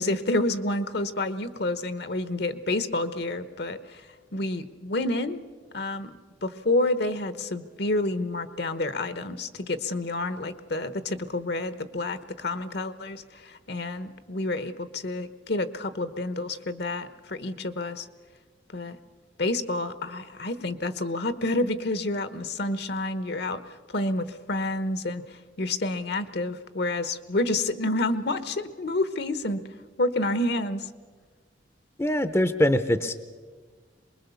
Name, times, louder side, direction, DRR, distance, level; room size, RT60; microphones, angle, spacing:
voice 1, 0.0-4.0 4.3-5.4 5.7-18.1 18.7-19.0 19.4-23.6 23.9-29.6 30.0-30.9, left 2 dB, 60° left, 13 dB, 1.0 m, -29 dB
voice 2, 32.0-33.2, left 1 dB, 15° left, 11 dB, 0.6 m, -23 dB
23.5 x 21.5 x 7.0 m, 1.5 s
head